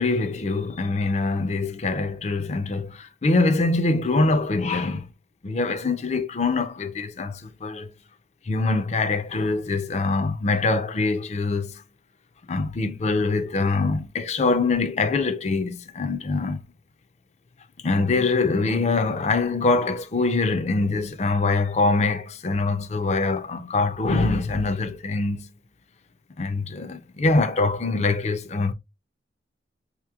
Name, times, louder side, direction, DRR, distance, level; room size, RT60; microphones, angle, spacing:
voice 1, 0.0-5.1 5.4-7.9 8.5-11.7 12.5-16.6 17.8-25.5 26.4-28.7, left 3 dB, 35° left, 0.5 m, -24 dB
5.4 x 2.9 x 2.3 m
head